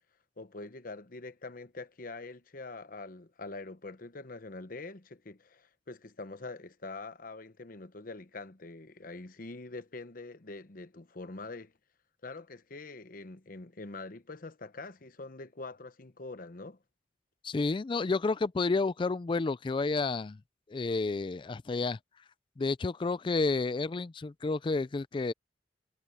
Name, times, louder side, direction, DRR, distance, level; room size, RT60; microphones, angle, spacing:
voice 1, 0.4-11.7 12.2-16.8, left 3 dB, 50° left, 1.0 m, -44 dB
voice 2, 17.4-20.4 20.7-22.0 22.6-25.3, left 3 dB, 30° left, 0.4 m, -30 dB
head